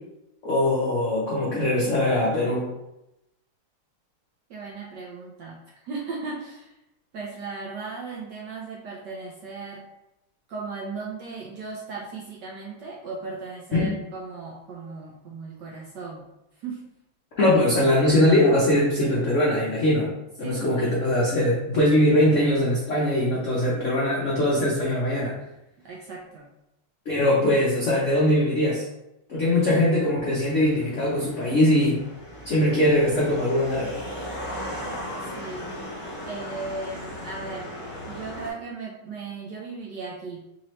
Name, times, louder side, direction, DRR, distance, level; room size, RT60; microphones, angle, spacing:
voice 1, 0.4-2.7 13.7-13.9 17.4-20.1 20.4-25.3 27.1-28.8 29.3-32.0 32.4-33.9, left 1 dB, 75° left, -6 dB, 0.7 m, -21 dB
voice 2, 4.5-5.6 5.8-6.7 7.1-9.9 10.5-16.2 16.5-16.8 20.4-20.9 25.8-26.5 35.3-35.6 36.3-37.7 38.1-40.5, right 4 dB, 70° right, -3 dB, 1.0 m, -36 dB
sound 1, 30.3-38.5, equal, 20° left, 0.8 m, -37 dB
4.0 x 2.9 x 3.1 m, 0.90 s
omnidirectional pair, 2.4 m